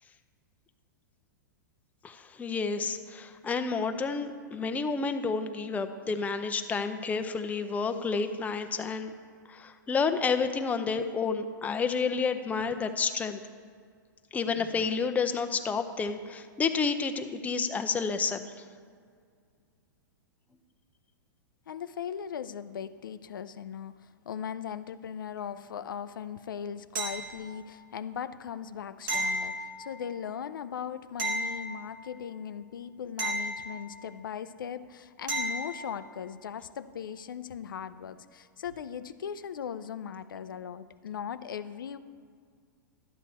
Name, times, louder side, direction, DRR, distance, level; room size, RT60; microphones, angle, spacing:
voice 1, 2.0-9.1 9.5-13.4 14.3-18.4, left 5 dB, 15° left, 7 dB, 0.6 m, -30 dB
voice 2, 21.7-42.0, left 8 dB, 85° left, 12 dB, 0.5 m, -39 dB
sound 1, 27.0-27.7 29.1-30.2 31.2-32.2 33.2-34.2 35.3-35.9 38.7-38.8, right 1 dB, 75° right, 2.0 m, -34 dB
11.5 x 8.3 x 4.2 m, 2.1 s
hypercardioid pair, 120°, 11 cm